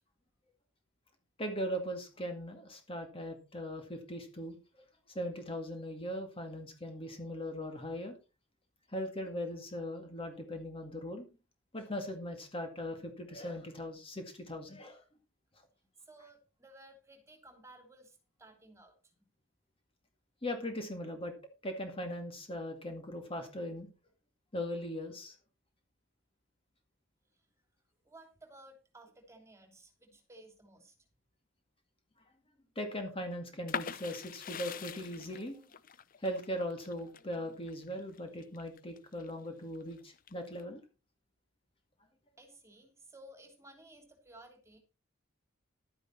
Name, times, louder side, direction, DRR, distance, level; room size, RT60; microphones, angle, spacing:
voice 1, 1.4-4.5 5.1-8.2 8.9-11.3 11.7-15.0 20.4-21.3 21.6-23.9 24.5-25.4 32.8-35.7 36.2-40.8, equal, 30° left, 5 dB, 2.0 m, -39 dB
voice 2, 16.0-19.3 28.0-30.9 42.4-44.8, right 1 dB, 15° right, 5 dB, 3.1 m, -56 dB
sound 1, 33.7-39.3 39.8-40.6, left 7 dB, 45° left, 0.6 m, -43 dB
12.0 x 9.9 x 4.4 m, 0.31 s
head